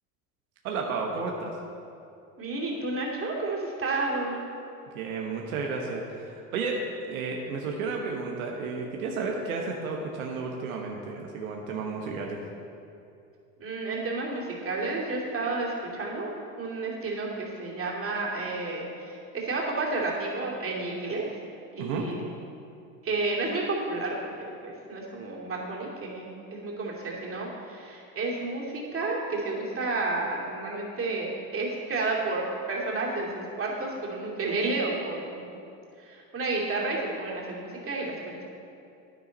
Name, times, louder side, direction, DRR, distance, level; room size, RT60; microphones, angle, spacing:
voice 1, 0.6-1.5 4.9-6.8 7.1-12.4 21.8-22.1, right 4 dB, 80° right, 0 dB, 1.2 m, -32 dB
voice 2, 2.4-4.4 13.6-21.2 21.7-22.2 23.0-35.5 36.0-38.5, right 3 dB, 30° right, -3 dB, 2.7 m, -31 dB
10.5 x 9.7 x 4.1 m, 2.6 s
hypercardioid pair, 90°, 42 cm